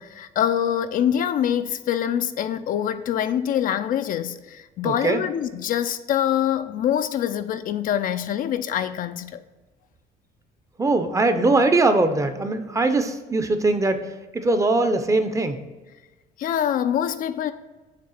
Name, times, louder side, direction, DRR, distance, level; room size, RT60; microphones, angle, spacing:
voice 1, 0.0-9.4 16.4-17.5, left 10 dB, 55° left, 0.4 m, -25 dB
voice 2, 4.8-5.2 10.8-14.0 14.3-15.6, right 2 dB, 20° right, 0.6 m, -21 dB
6.6 x 3.3 x 5.6 m
cardioid pair, 110°, 17 cm